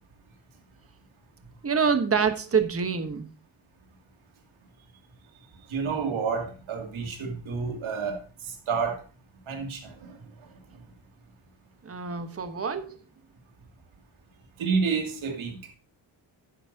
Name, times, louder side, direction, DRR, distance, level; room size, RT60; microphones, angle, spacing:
voice 1, 1.6-3.3 11.8-13.0, right 6 dB, 30° right, 1.3 m, -26 dB
voice 2, 5.7-9.0 9.5-10.5 14.6-15.7, right 5 dB, 80° right, 2.8 m, -30 dB
11.0 x 9.5 x 2.8 m
cardioid pair, 110°, 47 cm